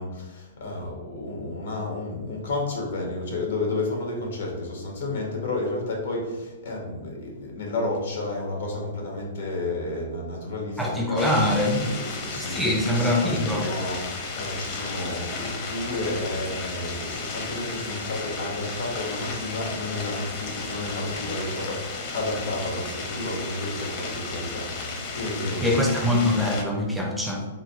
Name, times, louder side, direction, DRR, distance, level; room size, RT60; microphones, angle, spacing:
voice 1, 0.0-11.3 11.9-25.8 27.2-27.4, left 2 dB, 75° left, -1 dB, 1.4 m, -31 dB
voice 2, 10.8-11.9 12.4-13.7 25.6-27.5, left 1 dB, ahead, -1 dB, 0.5 m, -23 dB
sound 1, 11.2-26.6, left 3 dB, 35° left, 0.8 m, -34 dB
3.8 x 2.3 x 4.1 m, 1.2 s
hypercardioid pair, 150°, 0 cm